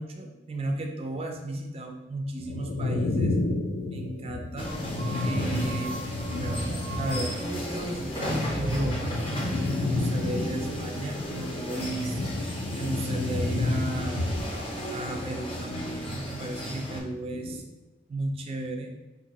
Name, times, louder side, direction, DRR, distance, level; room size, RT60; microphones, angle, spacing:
voice 1, 0.0-3.4 3.9-4.7 5.2-6.0 6.3-9.1 9.8-14.3 14.9-17.6 18.1-18.9, right 1 dB, 30° right, 3 dB, 0.3 m, -34 dB
sound 1, 2.4-7.7 8.0-16.6 16.9-17.6, left 2 dB, 85° left, 0.4 m, -31 dB
sound 2, 4.6-17.0, equal, 30° left, 0.6 m, -34 dB
2.7 x 2.5 x 3.9 m, 1.1 s
head